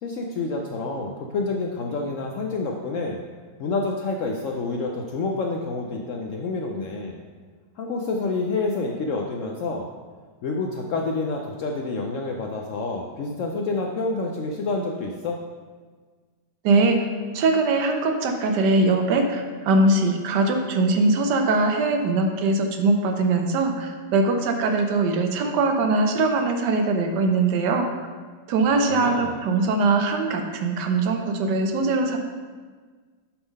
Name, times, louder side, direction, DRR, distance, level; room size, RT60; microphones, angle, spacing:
voice 1, 0.0-3.2 3.6-7.2 7.8-9.9 10.4-15.4 28.9-29.4, left 3 dB, 75° left, 1 dB, 0.7 m, -28 dB
voice 2, 16.6-17.1 17.3-27.9 28.5-32.2, right 3 dB, 80° right, 5 dB, 1.3 m, -21 dB
7.0 x 3.7 x 5.3 m, 1.5 s
omnidirectional pair, 1.8 m